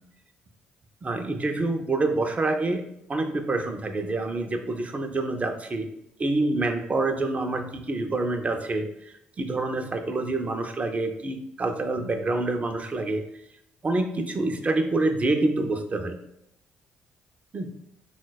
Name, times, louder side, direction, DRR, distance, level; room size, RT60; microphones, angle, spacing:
voice 1, 1.0-2.8 3.1-5.9 6.2-13.2 13.8-16.2 17.5-17.7, right 2 dB, 30° right, 6 dB, 0.4 m, -27 dB
3.8 x 2.1 x 2.2 m, 0.78 s
hypercardioid pair, 50°, 5 cm